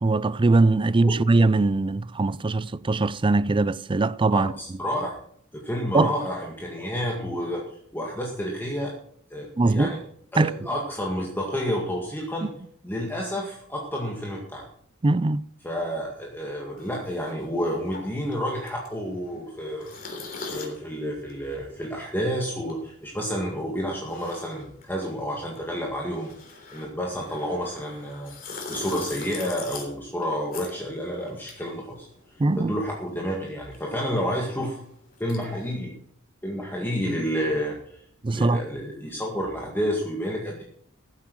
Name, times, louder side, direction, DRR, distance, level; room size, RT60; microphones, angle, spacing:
voice 1, 0.0-4.5 5.9-6.1 9.6-9.9 10.4-10.5 12.4-12.5 15.0-15.4 32.4-32.7 38.2-38.6, right 2 dB, 25° right, 0.4 m, -21 dB
voice 2, 4.3-5.1 5.5-8.9 9.3-10.0 10.3-12.5 12.8-14.7 15.6-20.0 20.5-32.1 32.6-34.8 35.2-35.9 36.4-38.0 38.3-40.6, equal, 10° left, 1.9 m, -30 dB
sound 1, 16.8-32.6 32.8-35.7, left 4 dB, 45° left, 3.5 m, -42 dB
14.5 x 8.2 x 6.3 m
head